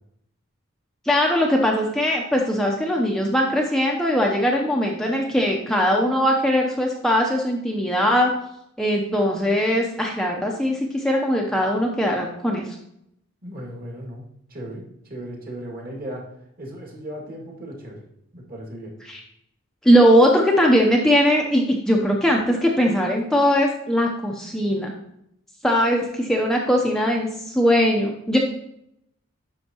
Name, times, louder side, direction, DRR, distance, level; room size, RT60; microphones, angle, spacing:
voice 1, 1.1-8.3 8.8-12.6 19.1-19.2 19.8-24.9 25.6-28.4, equal, ahead, -1 dB, 0.6 m, -20 dB
voice 2, 13.4-16.2 16.6-18.0 18.3-18.9, right 1 dB, 45° right, -1 dB, 2.2 m, -36 dB
10.0 x 6.3 x 2.9 m, 0.77 s
head